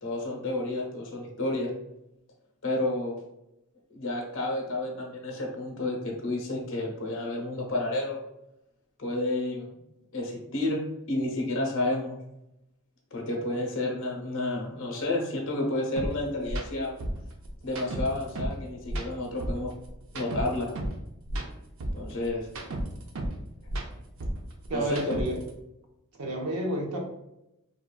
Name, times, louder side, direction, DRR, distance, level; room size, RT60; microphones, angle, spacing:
voice 1, 0.0-1.7 2.6-3.2 3.9-8.2 9.0-9.7 10.1-10.8 11.1-12.2 13.1-17.0 17.6-19.7 20.1-20.7 21.9-22.5 24.1-24.2 24.7-25.2, left 2 dB, 60° left, 0 dB, 0.7 m, -30 dB
sound 1, 16.0-16.1 16.4-16.6 17.0-18.6 18.9-21.0 21.3-23.4 23.6-25.5, right 1 dB, 65° right, 0.5 m, -33 dB
voice 2, 24.7-25.3 26.2-27.0, right 1 dB, 90° right, 1 dB, 0.7 m, -30 dB
3.6 x 2.2 x 2.2 m, 0.86 s
head